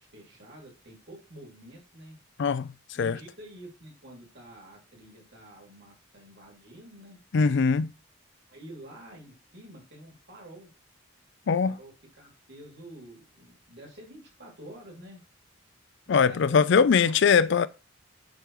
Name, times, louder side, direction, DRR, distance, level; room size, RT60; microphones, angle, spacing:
voice 1, 0.0-2.2 2.9-7.2 8.5-10.7 11.4-15.2 16.1-17.5, right 1 dB, 55° right, 2.7 m, -48 dB
voice 2, 2.4-3.2 7.3-7.9 11.5-11.8 16.1-17.7, left 6 dB, 55° left, 0.4 m, -22 dB
9.7 x 3.7 x 3.1 m
head